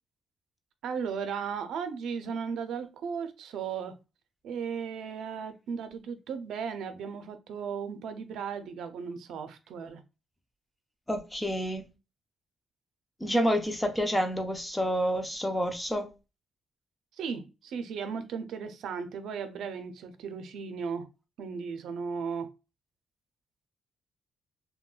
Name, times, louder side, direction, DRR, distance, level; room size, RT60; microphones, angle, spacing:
voice 1, 0.8-4.0 4.4-10.0 17.2-21.1 21.4-22.5, right 6 dB, 85° right, 0.5 m, -36 dB
voice 2, 11.1-11.8 13.2-16.1, equal, 5° left, 0.5 m, -28 dB
3.7 x 2.2 x 2.4 m
cardioid pair, 160°, 0 cm